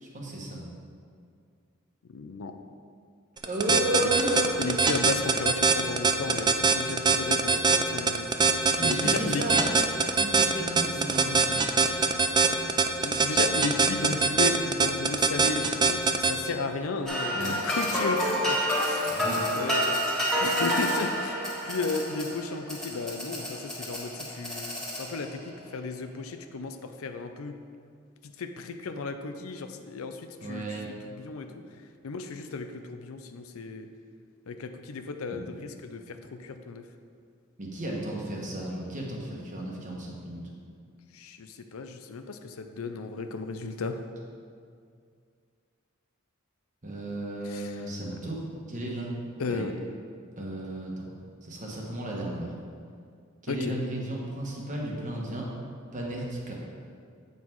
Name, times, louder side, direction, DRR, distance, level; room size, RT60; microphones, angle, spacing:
voice 1, 0.0-0.6 3.4-4.6 8.6-9.6 10.1-11.6 17.3-17.6 19.0-19.4 30.4-30.9 35.3-35.4 37.6-40.4 46.8-49.1 49.5-49.6 50.4-51.1 51.4-52.5 53.4-55.5 55.9-56.6, right 1 dB, 40° right, -2 dB, 1.3 m, -33 dB
voice 2, 2.1-2.5 4.6-9.7 12.2-12.8 13.0-19.3 19.5-20.0 20.4-27.5 28.4-31.5 32.0-33.9 34.5-36.8 41.1-44.0 47.4-47.7 49.4-49.7 53.5-53.7, left 4 dB, 85° left, 7 dB, 0.5 m, -34 dB
sound 1, 3.4-16.3, right 4 dB, 20° right, 0.4 m, -22 dB
sound 2, 17.1-25.4, equal, 5° left, 1.6 m, -29 dB
8.3 x 5.6 x 4.6 m, 2.2 s
head